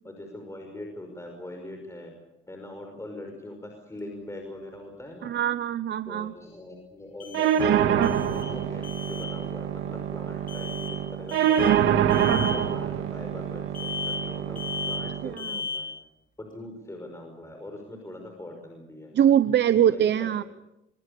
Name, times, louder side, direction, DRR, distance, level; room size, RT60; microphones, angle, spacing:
voice 1, 0.0-2.1 2.5-5.3 6.1-11.9 12.3-14.6 14.9-15.9 16.4-19.1 19.8-20.3, left 1 dB, 15° left, 3 dB, 5.6 m, -41 dB
sound 1, 3.9-4.0 7.2-7.8 8.0-8.6 8.8-9.3 10.5-11.0 11.3-11.8 12.1-12.6 13.7-14.3 14.6-15.1 15.4-15.9, left 5 dB, 45° left, 7.2 m, -35 dB
voice 2, 5.2-6.3 15.2-15.6 19.1-20.4, right 10 dB, 60° right, 14 dB, 0.8 m, -23 dB
sound 2, 7.3-15.3, right 9 dB, 85° right, 1.9 m, -25 dB
25.0 x 23.5 x 6.8 m, 0.87 s
cardioid pair, 90°, 20 cm